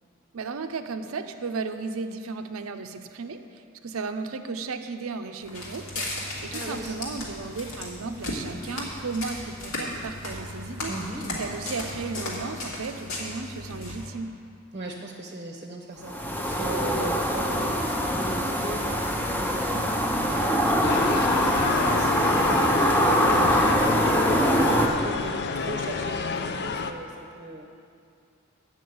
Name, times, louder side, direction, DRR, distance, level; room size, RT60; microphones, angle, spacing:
voice 1, 0.3-10.9 11.4-14.3, right 4 dB, 80° right, 7 dB, 0.6 m, -34 dB
Walk footsteps, 5.4-14.1, left 1 dB, 90° left, 2.1 m, -35 dB
voice 2, 6.5-7.0 10.9-11.4 14.7-17.8 18.1-23.6 24.0-27.7, right 1 dB, 35° right, 0 dB, 0.8 m, -38 dB
sound 1, 16.0-24.9, equal, 10° left, 0.7 m, -23 dB
sound 2, 20.8-26.9, left 5 dB, 50° left, 0.5 m, -29 dB
8.5 x 6.2 x 7.8 m, 2.3 s
head